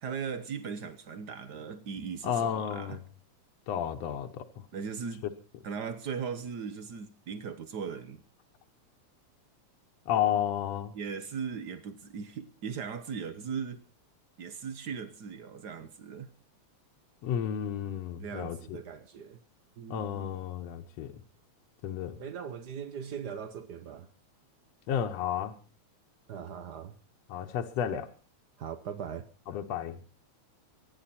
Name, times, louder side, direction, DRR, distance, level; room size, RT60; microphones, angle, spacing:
voice 1, 0.0-3.0 4.7-5.2 5.6-8.2 10.9-13.9 14.4-16.3 18.2-19.4 19.8-20.3 22.2-24.1 26.3-27.0 28.6-29.3, right 6 dB, 85° right, 0.9 m, -39 dB
voice 2, 2.2-3.0 3.7-4.5 10.1-10.9 17.2-18.8 19.9-21.1 21.8-22.2 24.9-25.5 27.3-28.1 29.5-30.0, left 9 dB, 65° left, 2.0 m, -32 dB
25.0 x 10.5 x 4.3 m
omnidirectional pair, 3.4 m